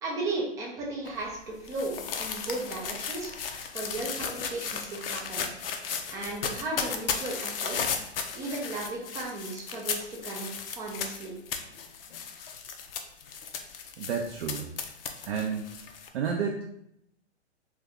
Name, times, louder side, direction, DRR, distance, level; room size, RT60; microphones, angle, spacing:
voice 1, 0.0-5.5 6.1-7.8 8.3-11.3, right 2 dB, 10° right, -3 dB, 0.4 m, -35 dB
sound 1, 1.0-16.1, left 6 dB, 55° left, 0.5 m, -35 dB
voice 2, 14.0-14.7 15.3-16.6, right 6 dB, 65° right, 1 dB, 0.6 m, -31 dB
2.7 x 2.3 x 3.5 m, 0.76 s
hypercardioid pair, 125°, 34 cm